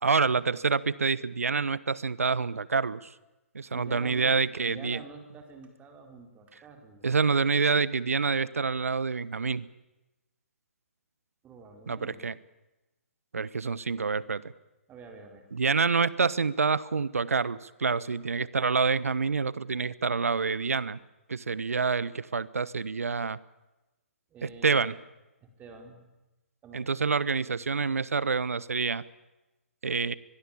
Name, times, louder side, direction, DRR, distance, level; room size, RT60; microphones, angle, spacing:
voice 1, 0.0-3.1 3.5-5.0 7.0-9.7 11.9-12.3 13.3-14.4 15.5-21.0 21.3-23.4 24.4-24.9 26.7-29.0 29.8-30.1, right 5 dB, 75° right, 19 dB, 1.1 m, -27 dB
voice 2, 3.7-4.3 4.6-7.1 11.4-12.2 14.9-15.4 24.3-24.9 25.4-26.1 26.6-26.9, right 4 dB, 20° right, 4 dB, 4.6 m, -47 dB
23.5 x 22.0 x 8.6 m, 1.0 s
figure-of-eight pair, 130°, 8 cm